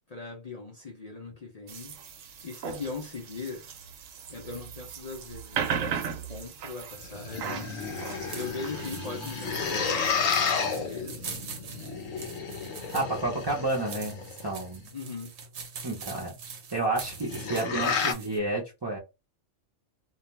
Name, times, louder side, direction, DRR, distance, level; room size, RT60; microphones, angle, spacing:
voice 1, 0.0-2.0 2.4-3.7 4.3-6.0 6.3-7.7 8.3-11.5 14.9-15.3, left 4 dB, 55° left, 0.4 m, -39 dB
sound 1, 1.7-10.4, right 7 dB, 85° right, 1.0 m, -37 dB
sound 2, 6.9-14.5 17.0-18.1, left 5 dB, 90° left, 1.1 m, -32 dB
sound 3, 7.6-18.4, right 5 dB, 65° right, 0.8 m, -44 dB
voice 2, 12.9-14.8 15.8-16.4 16.7-19.0, right 2 dB, 30° right, 0.5 m, -30 dB
2.3 x 2.2 x 3.0 m
omnidirectional pair, 1.3 m